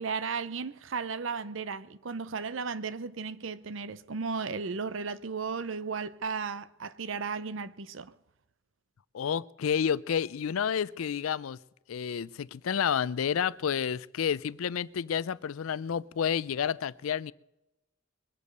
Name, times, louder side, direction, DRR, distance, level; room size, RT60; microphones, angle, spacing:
voice 1, 0.0-8.1, right 5 dB, 70° right, 0.7 m, -35 dB
voice 2, 9.1-11.6 11.9-17.3, left 7 dB, 85° left, 0.4 m, -30 dB
22.0 x 8.3 x 6.7 m
head